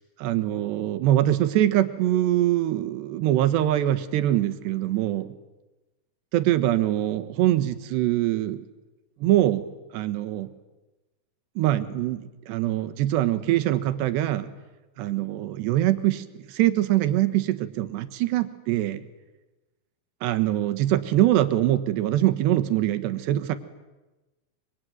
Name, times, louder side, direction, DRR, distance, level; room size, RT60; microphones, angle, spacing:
voice 1, 0.2-5.3 6.3-8.6 9.2-9.6 9.9-10.5 11.6-14.5 15.0-19.0 20.2-23.6, right 13 dB, 80° right, 11 dB, 3.5 m, -23 dB
24.5 x 24.5 x 9.5 m, 1.1 s
omnidirectional pair, 4.9 m